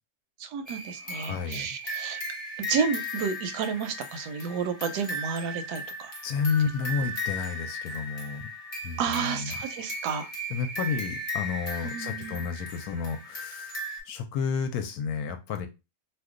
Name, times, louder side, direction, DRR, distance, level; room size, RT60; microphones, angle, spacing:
voice 1, 0.4-2.2 2.7-6.1 9.0-10.3 11.8-12.4, right 6 dB, 80° right, 8 dB, 1.1 m, -31 dB
sound 1, 0.7-14.0, left 1 dB, 30° left, 0.8 m, -36 dB
voice 2, 1.0-1.7 6.2-8.5 8.8-9.5 10.5-15.7, left 6 dB, 75° left, 7 dB, 1.0 m, -31 dB
2.8 x 2.2 x 3.6 m, 0.26 s
omnidirectional pair, 1.7 m